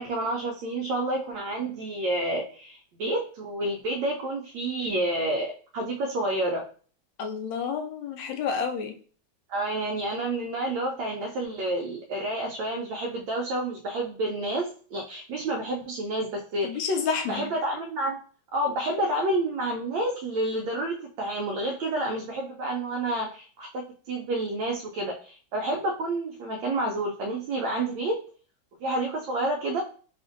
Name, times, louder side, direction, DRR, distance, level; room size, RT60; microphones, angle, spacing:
voice 1, 0.0-6.6 9.5-16.9 17.3-18.2 18.5-28.2 28.8-29.8, right 1 dB, 75° right, 0 dB, 1.2 m, -29 dB
voice 2, 7.2-9.0 16.6-17.5, left 5 dB, 75° left, 5 dB, 1.2 m, -29 dB
5.0 x 2.5 x 2.5 m, 0.43 s
omnidirectional pair, 2.2 m